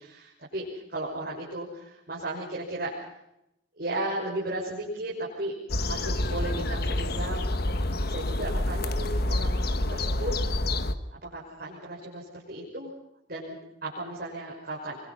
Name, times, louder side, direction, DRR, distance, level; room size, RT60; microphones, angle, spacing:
voice 1, 0.0-2.9 3.8-5.5 5.9-7.5 8.0-10.3 10.8-10.9 11.2-12.9 13.3-15.0, right 1 dB, 50° right, -5 dB, 6.1 m, -35 dB
sound 1, 5.7-10.9, left 1 dB, 55° left, 1.3 m, -28 dB
26.5 x 24.0 x 5.7 m, 0.83 s
head